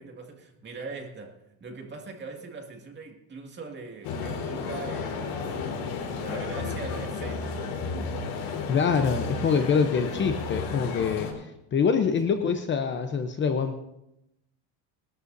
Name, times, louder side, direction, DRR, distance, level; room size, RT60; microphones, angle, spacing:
voice 1, 0.0-7.6 9.3-9.7 12.3-12.5, right 4 dB, 25° right, 2.2 m, -41 dB
sound 1, 4.0-11.3, left 4 dB, 80° left, 4.2 m, -32 dB
voice 2, 8.7-13.8, left 6 dB, 25° left, 0.8 m, -25 dB
21.0 x 12.5 x 2.7 m
cardioid pair, 140°, 42 cm